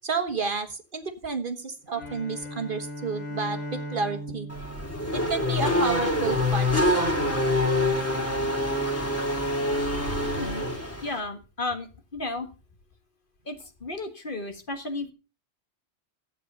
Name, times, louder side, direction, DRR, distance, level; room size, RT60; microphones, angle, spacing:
voice 1, 0.0-4.5 5.1-7.1, right 4 dB, 50° right, 7 dB, 1.5 m, -31 dB
Bowed string instrument, 1.9-6.1, equal, 85° left, 2.2 m, -38 dB
Race car auto racing / Accelerating revving vroom, 4.5-11.2, left 1 dB, 10° left, 2.8 m, -25 dB
voice 2, 11.0-11.9 12.1-12.5 13.5-13.6 13.8-15.1, left 2 dB, 50° left, 6 dB, 1.8 m, -33 dB
12.5 x 8.5 x 5.4 m, 0.32 s
omnidirectional pair, 1.2 m